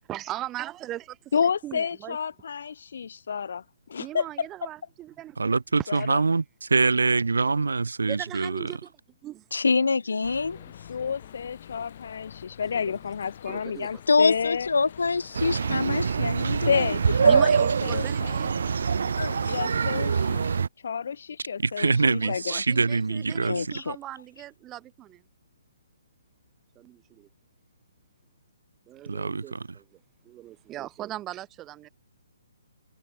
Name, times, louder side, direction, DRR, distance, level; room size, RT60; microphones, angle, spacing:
voice 1, 0.1-1.2 1.6-2.2 4.0-5.6 6.0-6.1 8.1-8.9 9.2-9.4 10.5-10.7 11.8-11.9 13.5-13.9 17.2-18.6 22.2-25.2 26.8-27.3 28.9-29.8 30.3-31.9, right 14 dB, 20° right, 4.2 m, -39 dB
voice 2, 1.3-3.6 3.9-4.7 5.9-6.2 10.9-14.7 16.7-17.5 17.8-18.4 19.5-20.6 20.8-22.6, left 6 dB, 65° left, 3.5 m, -30 dB
voice 3, 5.4-8.7 21.6-23.7 29.1-29.6, right 4 dB, 90° right, 3.0 m, -24 dB
voice 4, 9.5-10.6 14.1-16.9 19.2-19.6 23.5-24.0, left 4 dB, 85° left, 0.8 m, -25 dB
sound 1, 10.2-20.5, left 10 dB, 50° left, 6.9 m, -46 dB
sound 2, 15.4-20.7, right 6 dB, 70° right, 1.3 m, -24 dB
hypercardioid pair, 150°, 0 cm